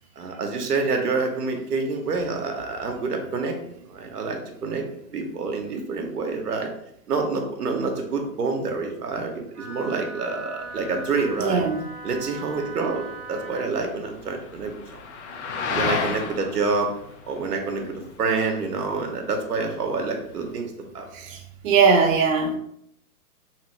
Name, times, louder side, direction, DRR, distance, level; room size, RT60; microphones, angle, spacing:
voice 1, 0.2-3.6 3.9-4.9 5.1-6.7 7.1-11.6 12.0-14.7 15.6-16.9 17.3-21.1, right 4 dB, 90° right, 3 dB, 0.8 m, -27 dB
Wind instrument woodwind instrument, 9.5-13.7, right 2 dB, 20° right, 0.5 m, -39 dB
sound 1, 10.6-20.5, left 5 dB, 50° left, 0.5 m, -34 dB
voice 2, 11.4-11.8 21.1-22.6, right 5 dB, 60° right, 2 dB, 0.7 m, -20 dB
2.9 x 2.5 x 3.0 m, 0.71 s
hypercardioid pair, 125°, 45 cm